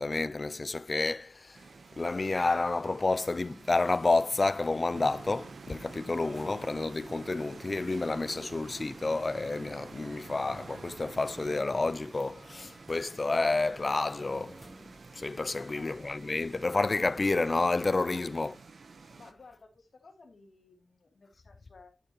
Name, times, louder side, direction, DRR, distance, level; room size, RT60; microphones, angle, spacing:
voice 1, 0.0-1.6 2.0-14.6 15.1-18.5, left 3 dB, 40° left, 0.4 m, -30 dB
sound 1, 1.5-19.3, right 4 dB, 75° right, 1.0 m, -52 dB
sound 2, 3.0-16.8, right 1 dB, 20° right, 1.1 m, -57 dB
sound 3, 4.9-11.6, right 4 dB, 90° right, 0.6 m, -48 dB
voice 2, 15.5-16.1 18.1-18.4 19.1-22.0, left 4 dB, 70° left, 2.9 m, -56 dB
12.0 x 6.6 x 3.0 m
wide cardioid pair, 95°, 0 cm